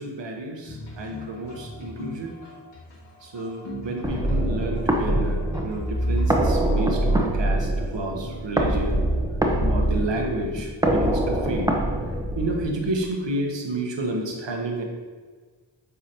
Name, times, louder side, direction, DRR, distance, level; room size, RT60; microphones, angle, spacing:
voice 1, 0.0-2.3 3.2-9.0 9.7-11.7 12.3-14.8, right 2 dB, 80° right, 2 dB, 1.1 m, -30 dB
sound 1, 0.6-10.6, left 3 dB, 80° left, 1.6 m, -40 dB
sound 2, 4.0-13.0, right 1 dB, 10° right, 0.9 m, -24 dB
7.7 x 4.9 x 2.9 m, 1.5 s
cardioid pair, 55°, 43 cm